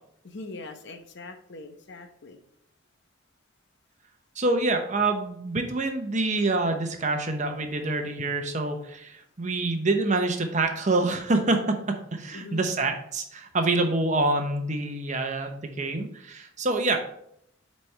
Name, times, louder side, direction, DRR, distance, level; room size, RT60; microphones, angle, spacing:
voice 1, 0.2-2.4 12.3-12.6, left 2 dB, 55° left, 6 dB, 0.9 m, -41 dB
voice 2, 4.4-17.0, right 2 dB, 35° right, 5 dB, 0.8 m, -26 dB
8.2 x 4.3 x 3.3 m, 0.73 s
head